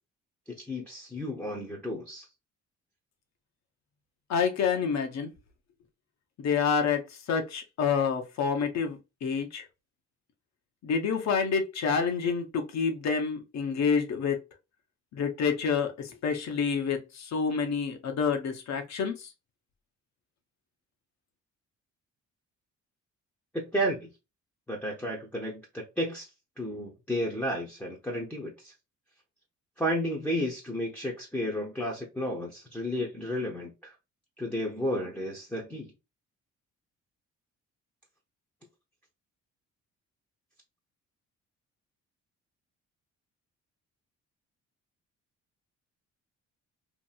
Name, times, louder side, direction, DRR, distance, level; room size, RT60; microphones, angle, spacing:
voice 1, 0.5-2.3 23.5-24.1 24.7-26.3 26.6-28.7 29.8-33.9 34.4-35.9, equal, 5° left, 0.7 m, -32 dB
voice 2, 4.3-5.3 6.4-9.7 10.8-14.4 15.1-19.3, left 6 dB, 60° left, 0.7 m, -28 dB
2.8 x 2.6 x 2.3 m
cardioid pair, 90°, 30 cm